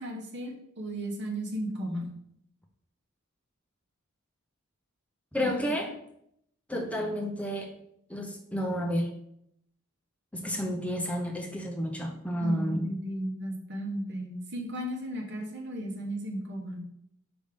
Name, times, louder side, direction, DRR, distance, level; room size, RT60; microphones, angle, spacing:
voice 1, 0.0-2.1 5.4-5.5 12.4-16.8, right 1 dB, 55° right, 1 dB, 1.2 m, -35 dB
voice 2, 5.3-5.9 6.7-7.7 8.1-9.1 10.3-12.9, equal, 5° left, 1 dB, 0.6 m, -30 dB
5.3 x 3.5 x 5.1 m, 0.73 s
head